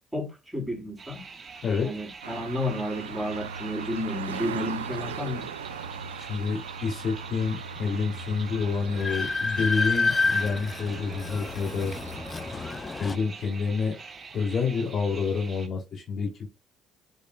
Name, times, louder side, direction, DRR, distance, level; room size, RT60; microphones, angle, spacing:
voice 1, 0.1-1.2 1.8-5.5, left 1 dB, 5° right, 4.4 m, -32 dB
sound 1, 1.0-15.7, right 5 dB, 40° right, 1.7 m, -45 dB
sound 2, 2.2-13.0, right 6 dB, 90° right, 0.4 m, -39 dB
voice 2, 6.2-11.9 13.0-14.0 14.3-16.5, left 5 dB, 50° left, 3.3 m, -28 dB
Train, 8.2-8.3 8.6-13.2, left 3 dB, 30° left, 0.5 m, -29 dB
9.1 x 5.3 x 2.4 m
hypercardioid pair, 55°, 0 cm